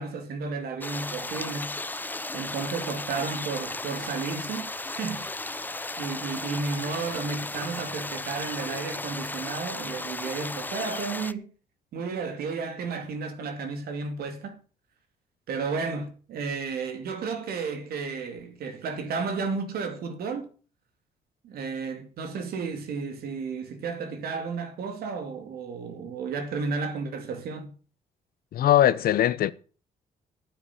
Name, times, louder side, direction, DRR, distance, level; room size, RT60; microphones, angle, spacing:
voice 1, 0.0-1.8 2.3-5.6 6.0-11.5 11.9-14.6 15.5-20.5 21.4-27.7, right 4 dB, 75° right, 2.6 m, -33 dB
sound 1, 0.8-11.3, left 2 dB, 10° left, 0.7 m, -35 dB
voice 2, 28.5-29.5, left 12 dB, 70° left, 0.9 m, -20 dB
9.3 x 9.2 x 8.4 m
cardioid pair, 80°, 16 cm